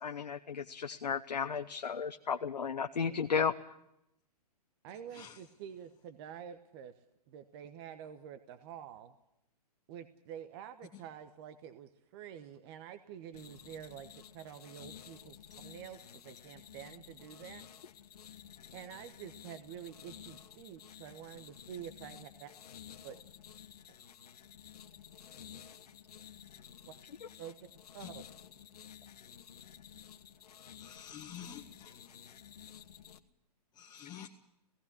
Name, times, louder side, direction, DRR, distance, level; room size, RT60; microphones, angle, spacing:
voice 1, 0.0-3.5, left 6 dB, 85° left, 8 dB, 0.9 m, -34 dB
voice 2, 3.0-3.3 4.8-9.1 9.9-17.7 18.7-22.5 23.0-23.2 26.8-27.0 27.4-27.7 27.9-28.2, right 9 dB, 40° right, 9 dB, 1.1 m, -48 dB
sound 1, 13.3-33.2, left 9 dB, 65° left, 1.4 m, -53 dB
voice 3, 30.8-32.3 32.7-32.8 33.7-34.3, left 9 dB, 20° left, 2 dB, 1.1 m, -49 dB
17.5 x 15.5 x 9.8 m, 0.83 s
hypercardioid pair, 125°, 21 cm